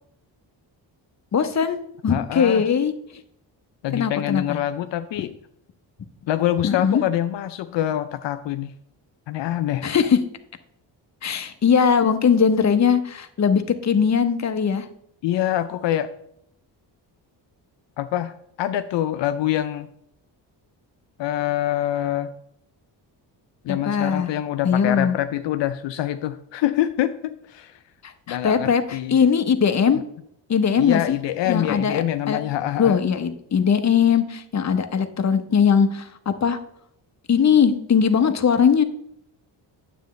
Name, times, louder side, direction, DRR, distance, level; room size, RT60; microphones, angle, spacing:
voice 1, 1.3-1.8 2.0-2.9 3.9-4.6 6.6-7.0 9.8-10.2 11.2-14.9 23.7-24.3 24.6-25.1 28.0-30.0 30.5-31.2 31.5-32.4 32.8-36.6 37.3-38.8, left 7 dB, 35° left, 8 dB, 0.8 m, -20 dB
voice 2, 2.1-2.6 3.8-5.3 6.3-8.7 9.3-9.9 15.2-16.1 18.0-19.9 21.2-22.3 23.6-27.8 28.3-29.2 30.8-33.0, left 12 dB, 70° left, 10 dB, 0.5 m, -25 dB
9.1 x 7.7 x 3.2 m, 0.73 s
cardioid pair, 75°, 46 cm